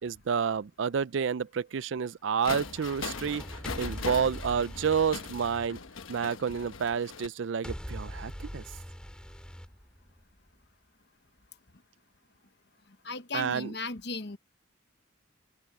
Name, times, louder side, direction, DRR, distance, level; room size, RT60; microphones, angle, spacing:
voice 1, 0.0-5.8 6.1-8.6 13.3-13.7, right 6 dB, 70° right, 0.4 m, -30 dB
sound 1, 2.4-7.3, left 5 dB, 85° left, 1.1 m, -40 dB
sound 2, 2.4-6.5 7.6-10.5, equal, 5° left, 6.0 m, -42 dB
voice 2, 13.0-14.4, left 3 dB, 55° left, 1.2 m, -36 dB
open air
head